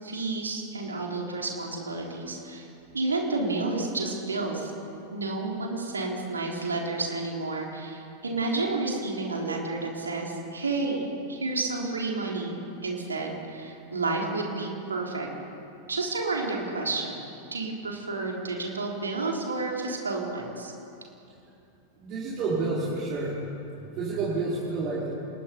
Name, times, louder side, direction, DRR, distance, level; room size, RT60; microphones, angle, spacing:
voice 1, 0.0-2.7 2.9-4.7 5.1-12.6 12.8-15.3 15.9-17.2 17.5-20.7, right 3 dB, 75° right, -1 dB, 4.2 m, -30 dB
voice 2, 22.0-23.4 23.8-25.1, right 3 dB, 40° right, -6 dB, 4.8 m, -29 dB
29.5 x 21.0 x 5.5 m, 2.7 s
figure-of-eight pair, 90°, 0 cm